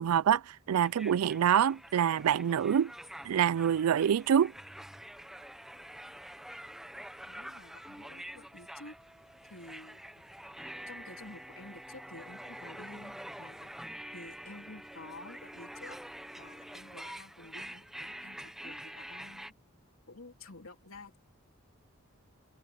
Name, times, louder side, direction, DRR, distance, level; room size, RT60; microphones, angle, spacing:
voice 1, 0.0-2.9 3.2-4.5, right 9 dB, 90° right, 0.4 m, -26 dB
sound 1, 0.8-19.5, right 1 dB, ahead, 0.8 m, -47 dB
voice 2, 7.2-8.9 9.5-10.2 10.9-13.7 14.1-16.0 16.4-19.5 20.1-21.2, left 2 dB, 75° left, 3.3 m, -51 dB
head